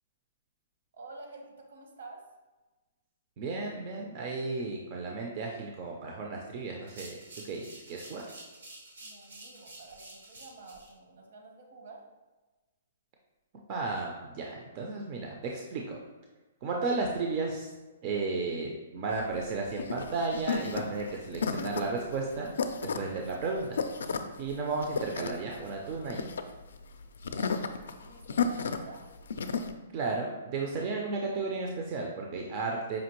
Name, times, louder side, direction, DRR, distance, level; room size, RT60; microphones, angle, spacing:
voice 1, 0.9-2.2 9.0-12.1 27.4-27.7 28.0-29.0, right 3 dB, 65° right, 1 dB, 0.9 m, -49 dB
voice 2, 3.4-7.2 7.4-8.2 13.7-16.0 16.6-17.7 18.0-22.5 22.8-23.8 24.4-26.3 29.9-33.0, right 3 dB, 30° right, 0 dB, 0.4 m, -33 dB
sound 1, 6.8-10.9, right 2 dB, 90° right, 1.2 m, -49 dB
sound 2, 19.1-29.7, left 5 dB, 80° left, 0.3 m, -33 dB
5.0 x 2.8 x 2.9 m, 1.2 s
hypercardioid pair, 170°, 0 cm